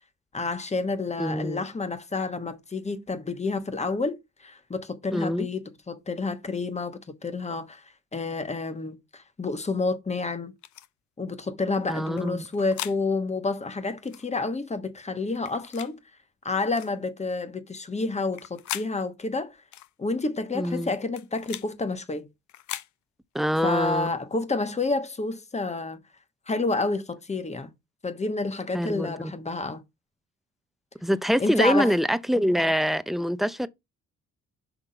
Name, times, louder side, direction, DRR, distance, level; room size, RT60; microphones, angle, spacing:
voice 1, 0.3-5.6 5.9-7.8 8.1-10.5 11.2-16.0 16.4-19.6 20.0-22.3 23.6-26.0 26.5-27.7 28.0-29.8 31.4-31.9, left 3 dB, 20° left, 1.2 m, -29 dB
voice 2, 1.2-1.6 5.1-5.5 11.9-12.5 20.5-20.9 23.3-24.2 28.7-29.1 31.0-33.7, equal, ahead, 0.5 m, -25 dB
sound 1, 10.6-10.9 12.2-13.0 14.0-14.3 15.3-15.9 16.7-16.9 18.2-18.9 19.7-19.9 20.9-21.7 22.5-22.9, left 13 dB, 70° left, 0.6 m, -38 dB
6.1 x 3.5 x 5.6 m
cardioid pair, 90°, 30 cm